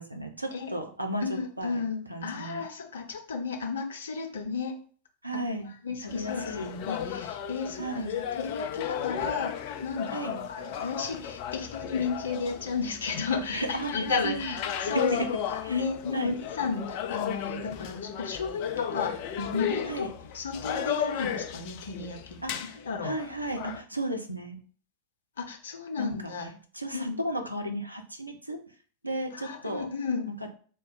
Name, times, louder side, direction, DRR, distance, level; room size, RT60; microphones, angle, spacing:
voice 1, 0.0-2.7 5.2-5.7 6.0-6.7 7.8-8.2 10.1-10.5 13.5-14.6 14.9-15.0 15.6-15.8 16.1-16.3 19.8-20.1 22.4-24.6 26.0-26.5 26.7-28.6 29.0-29.9 30.3-30.5, right 1 dB, 85° right, 5 dB, 0.6 m, -35 dB
voice 2, 1.2-4.7 5.3-5.4 5.8-9.5 9.8-15.4 15.7-22.6 22.8-23.1 25.4-26.5 26.9-27.2 29.3-30.3, left 5 dB, 65° left, 3 dB, 0.8 m, -33 dB
sound 1, 6.1-23.8, left 9 dB, 45° left, 0.4 m, -35 dB
3.6 x 2.2 x 4.1 m, 0.43 s
figure-of-eight pair, 90°, 0 cm